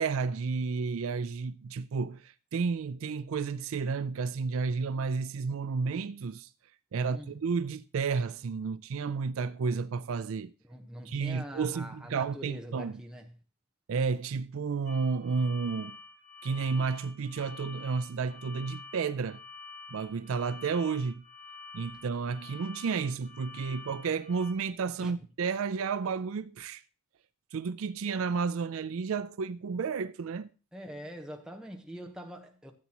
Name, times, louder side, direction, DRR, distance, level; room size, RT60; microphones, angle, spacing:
voice 1, 0.0-6.5 6.9-10.5 11.1-12.9 13.9-16.0 16.4-19.4 19.9-21.2 21.7-26.8 27.5-30.5, right 5 dB, 65° right, 0.4 m, -31 dB
voice 2, 7.0-7.4 10.6-13.4 25.0-25.1 30.7-32.7, equal, 5° right, 1.0 m, -44 dB
sound 1, 14.8-24.5, left 4 dB, 45° left, 5.0 m, -48 dB
13.5 x 8.2 x 2.9 m
head